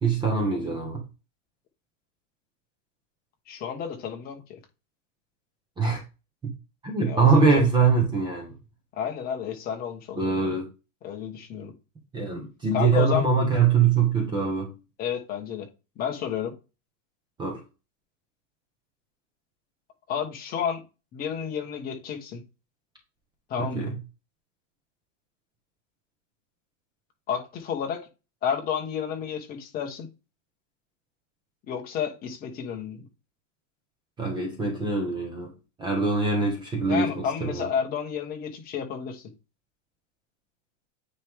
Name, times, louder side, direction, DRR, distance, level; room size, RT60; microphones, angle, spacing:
voice 1, 0.0-1.0 5.8-6.0 6.4-6.5 6.8-8.5 10.2-10.7 12.1-14.7 17.4-17.6 23.6-23.9 34.2-35.5 35.8-37.7, right 4 dB, 10° right, 1.0 m, -23 dB
voice 2, 3.5-4.6 7.1-7.6 8.9-10.6 11.0-11.7 12.7-13.3 15.0-15.7 16.0-16.5 20.1-20.8 21.1-22.4 23.5-23.9 27.3-28.1 28.4-30.1 31.7-33.0 36.9-39.2, left 8 dB, 20° left, 1.2 m, -31 dB
9.2 x 3.2 x 3.6 m
supercardioid pair, 170°, 41 cm